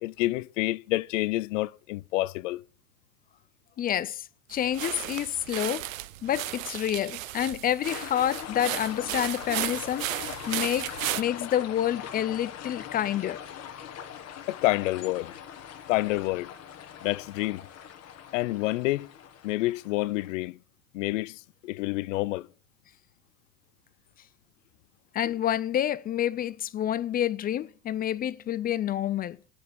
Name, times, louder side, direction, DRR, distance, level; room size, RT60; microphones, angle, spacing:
voice 1, 0.0-2.6 14.5-15.3 15.9-16.5 17.0-17.6 18.3-19.1 19.4-20.6 20.9-22.5, left 19 dB, 70° left, 0.5 m, -28 dB
voice 2, 3.8-5.9 6.2-10.9 11.2-13.4 25.1-29.4, left 11 dB, 25° left, 0.4 m, -28 dB
sound 1, 4.5-11.2, right 14 dB, 80° right, 0.7 m, -35 dB
sound 2, 7.8-20.3, left 9 dB, 40° left, 1.6 m, -42 dB
9.1 x 6.3 x 7.1 m
hypercardioid pair, 90°, 40 cm